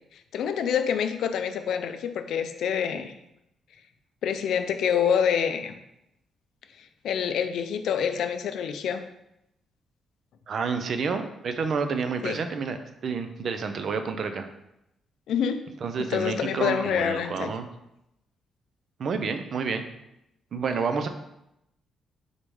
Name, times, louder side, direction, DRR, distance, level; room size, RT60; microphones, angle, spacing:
voice 1, 0.3-3.1 4.2-5.7 7.0-9.1 12.2-12.4 15.3-15.6 16.1-17.5, left 8 dB, 75° left, 8 dB, 0.3 m, -26 dB
voice 2, 10.5-12.8 13.0-14.5 15.8-17.7 19.0-19.8 20.5-21.1, right 5 dB, 55° right, 8 dB, 0.4 m, -29 dB
3.9 x 3.4 x 3.1 m, 0.84 s
cardioid pair, 130°, 0 cm